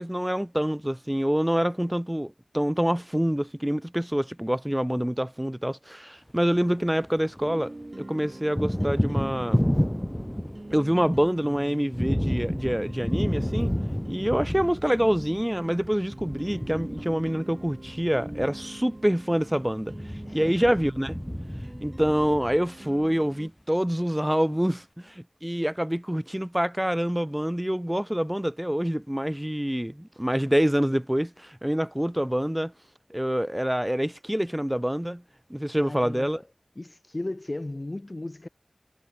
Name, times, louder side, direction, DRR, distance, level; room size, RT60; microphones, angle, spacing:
voice 1, 0.0-9.6 10.7-13.7 14.1-19.9 20.3-21.1 21.8-32.7 33.1-35.2 35.5-36.4, equal, 10° right, 3.2 m, -26 dB
Thunder, 6.3-7.5 7.8-23.0, equal, 10° left, 1.3 m, -31 dB
sound 1, 7.4-23.5, right 2 dB, 45° right, 5.5 m, -44 dB
voice 2, 20.3-20.7 35.8-36.5 36.8-38.5, left 2 dB, 45° left, 3.5 m, -36 dB
wide cardioid pair, 50°, 0 cm